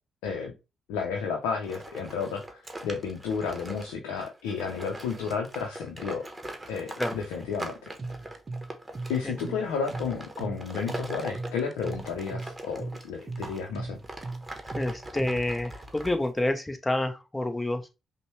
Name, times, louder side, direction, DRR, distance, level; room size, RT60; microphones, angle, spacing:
voice 1, 0.2-0.5 0.9-6.2 6.7-7.7 9.1-14.0, left 6 dB, 80° left, 0.6 m, -32 dB
sound 1, 1.6-13.6 14.0-16.5, right 1 dB, 15° right, 1.1 m, -41 dB
sound 2, 8.0-15.6, right 3 dB, 40° right, 0.6 m, -38 dB
voice 2, 14.7-17.9, left 1 dB, 15° left, 0.9 m, -28 dB
5.3 x 2.2 x 3.1 m
hypercardioid pair, 45°, 0 cm